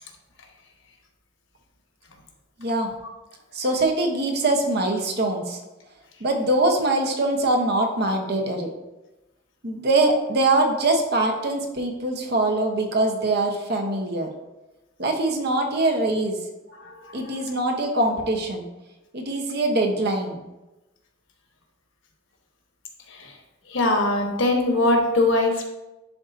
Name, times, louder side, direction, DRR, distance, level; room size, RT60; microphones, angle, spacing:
voice 1, 2.6-2.9 3.5-5.6 6.2-8.7 9.6-14.3 15.0-16.4 17.1-18.7 19.1-20.4, right 2 dB, 55° right, 3 dB, 1.0 m, -23 dB
voice 2, 16.8-17.3 23.1-23.3 23.7-25.6, left 2 dB, 75° left, 2 dB, 1.2 m, -22 dB
10.5 x 4.0 x 2.6 m, 1.0 s
head